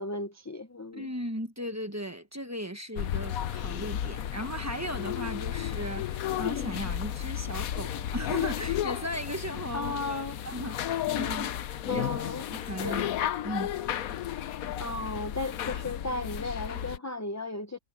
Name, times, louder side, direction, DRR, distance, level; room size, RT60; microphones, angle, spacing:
voice 1, 0.0-1.1 9.7-10.4 11.9-13.0 14.8-17.8, left 2 dB, 20° left, 0.5 m, -35 dB
voice 2, 0.9-12.1 12.5-13.0 13.4-13.7, equal, 10° right, 1.1 m, -37 dB
sound 1, 3.0-17.0, left 11 dB, 75° left, 1.2 m, -33 dB
omnidirectional pair, 1.5 m